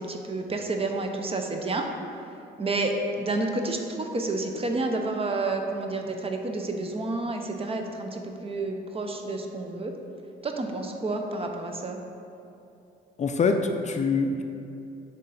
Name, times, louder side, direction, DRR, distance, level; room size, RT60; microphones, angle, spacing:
voice 1, 0.0-1.9 2.6-9.9 10.4-12.0, right 2 dB, 30° right, 3 dB, 0.6 m, -30 dB
voice 2, 13.2-14.4, left 4 dB, 35° left, 5 dB, 0.4 m, -24 dB
6.2 x 3.7 x 4.1 m, 2.7 s
cardioid pair, 90°, 20 cm